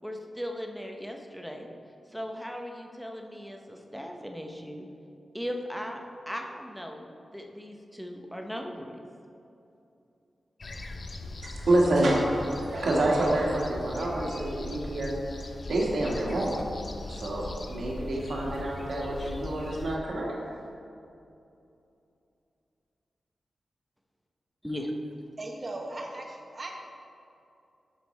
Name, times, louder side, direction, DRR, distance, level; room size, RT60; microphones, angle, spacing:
voice 1, 0.0-1.7 2.1-4.9 5.3-9.0 24.6-24.9, equal, ahead, 2 dB, 0.6 m, -38 dB
sound 1, 10.6-20.0, left 2 dB, 40° left, 0.5 m, -40 dB
voice 2, 11.4-15.1 15.7-16.5 17.1-20.4, right 1 dB, 70° right, -3 dB, 1.4 m, -27 dB
voice 3, 25.4-26.7, right 2 dB, 30° right, 1 dB, 0.9 m, -38 dB
8.0 x 6.3 x 4.1 m, 2.7 s
wide cardioid pair, 145°, 0 cm